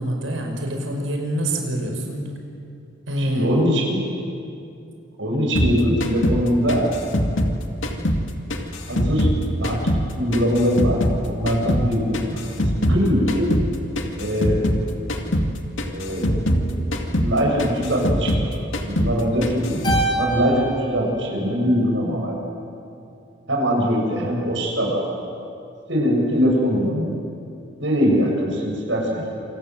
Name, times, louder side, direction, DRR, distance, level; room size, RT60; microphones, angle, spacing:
voice 1, 0.0-2.3 3.1-3.5, right 1 dB, 85° right, 3 dB, 5.7 m, -26 dB
voice 2, 3.2-4.1 5.2-6.9 8.9-9.3 9.6-11.0 11.2-12.5 12.8-13.5 14.2-14.6 15.8-16.3 17.2-22.3 23.5-25.0 25.9-27.1 27.8-29.3, equal, 70° right, -1 dB, 7.7 m, -22 dB
sound 1, 5.6-8.3 8.5-11.2 11.5-14.8 15.1-15.5 15.8-18.5 18.7-19.2 19.4-20.1, equal, 80° left, 2.4 m, -23 dB
Keyboard (musical), 19.8-22.4, right 2 dB, 25° left, 5.6 m, -28 dB
27.5 x 27.5 x 7.8 m, 2.6 s
head